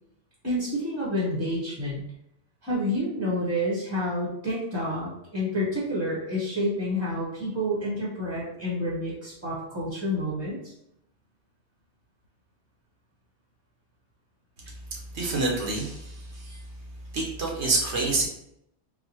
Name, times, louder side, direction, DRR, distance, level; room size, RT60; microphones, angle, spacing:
voice 1, 0.4-2.0 2.6-10.6, equal, 15° right, -6 dB, 0.8 m, -29 dB
voice 2, 14.9-16.6 17.1-18.3, right 3 dB, 75° right, -2 dB, 1.1 m, -27 dB
3.9 x 2.1 x 2.9 m, 0.79 s
omnidirectional pair, 1.2 m